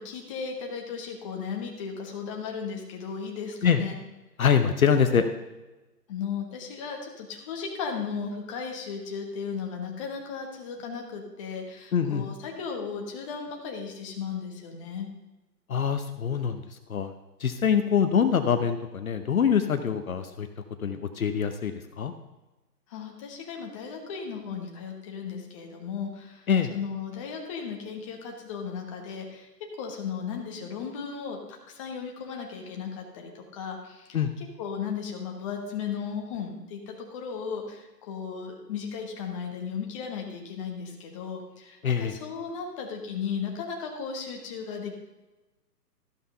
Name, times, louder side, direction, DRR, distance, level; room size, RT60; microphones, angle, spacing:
voice 1, 0.0-3.9 6.1-15.1 22.9-29.5 29.8-34.2 34.6-44.9, left 6 dB, 20° left, 1 dB, 1.3 m, -36 dB
voice 2, 4.4-5.2 11.9-12.3 15.7-17.1 17.4-20.5 20.8-22.1 26.5-26.7 34.1-34.3 41.8-42.1, left 7 dB, 55° left, 8 dB, 0.9 m, -24 dB
14.0 x 5.8 x 5.6 m, 1.1 s
hypercardioid pair, 155°, 49 cm